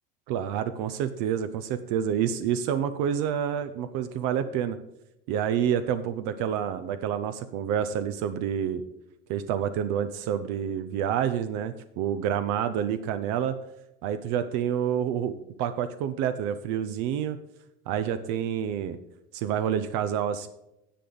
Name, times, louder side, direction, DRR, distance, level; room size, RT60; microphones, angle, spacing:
voice 1, 0.3-4.8 5.3-8.8 9.3-13.6 14.0-17.4 17.9-19.0 19.3-20.5, right 9 dB, 80° right, 10 dB, 0.6 m, -28 dB
10.0 x 7.7 x 4.0 m, 0.86 s
cardioid pair, 130°, 29 cm